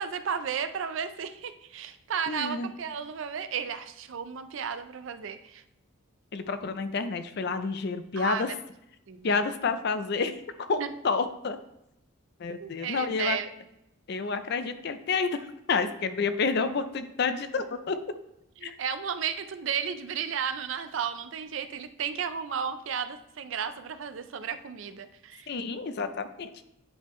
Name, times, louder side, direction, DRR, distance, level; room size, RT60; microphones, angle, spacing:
voice 1, 0.0-5.6 8.1-8.6 9.1-9.4 10.8-10.9 12.6-13.5 18.6-25.5, right 7 dB, 65° right, 10 dB, 0.4 m, -33 dB
voice 2, 2.3-2.7 6.3-8.5 9.2-10.4 10.7-11.6 12.4-13.4 14.1-18.0 18.6-18.7 25.5-26.6, left 4 dB, 50° left, 10 dB, 0.4 m, -29 dB
9.7 x 3.6 x 3.1 m, 0.84 s
head